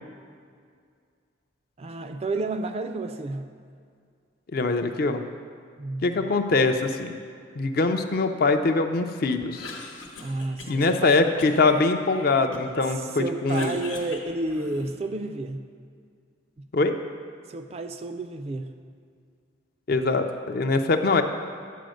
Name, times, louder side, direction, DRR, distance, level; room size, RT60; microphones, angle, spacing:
voice 1, 1.8-3.5 5.8-6.1 10.2-11.3 12.9-15.7 17.5-18.7, right 2 dB, 30° right, 8 dB, 0.3 m, -31 dB
voice 2, 4.5-5.2 6.0-7.1 7.6-9.7 10.7-13.8 16.7-17.0 19.9-21.2, left 3 dB, 50° left, 7 dB, 0.4 m, -23 dB
Cough, 9.4-11.0 11.4-12.9 13.2-15.1, left 3 dB, 85° left, 1.1 m, -42 dB
9.2 x 4.1 x 6.4 m, 2.2 s
head